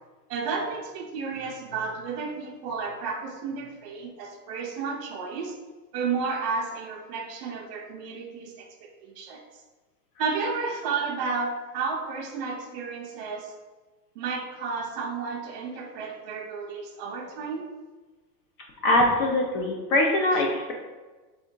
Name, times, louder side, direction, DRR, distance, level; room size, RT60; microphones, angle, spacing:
voice 1, 0.3-5.6 5.9-9.4 10.2-13.5 14.2-17.7, right 4 dB, 40° right, -1 dB, 0.5 m, -32 dB
voice 2, 18.8-20.7, left 1 dB, 35° left, 0 dB, 0.4 m, -22 dB
3.5 x 2.5 x 4.3 m, 1.3 s
supercardioid pair, 140°, 48 cm